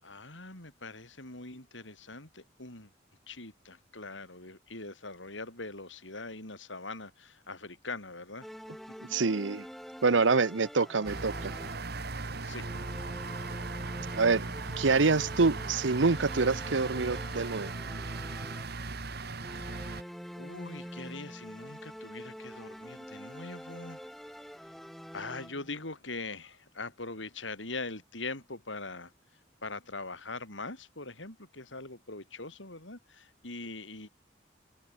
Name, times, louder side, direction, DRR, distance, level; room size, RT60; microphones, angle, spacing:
voice 1, 0.0-2.9 3.3-8.5 12.4-12.7 19.3-20.0 20.4-24.0 25.1-29.1 29.6-34.1, left 3 dB, 85° left, 7.3 m, -42 dB
sound 1, 8.4-12.1 12.5-19.0 19.4-25.8, equal, ahead, 6.1 m, -46 dB
voice 2, 9.1-9.7 10.0-11.5 14.1-14.5 14.8-17.7, right 4 dB, 80° right, 0.9 m, -26 dB
sound 2, 11.0-20.0, right 3 dB, 60° right, 1.9 m, -38 dB
head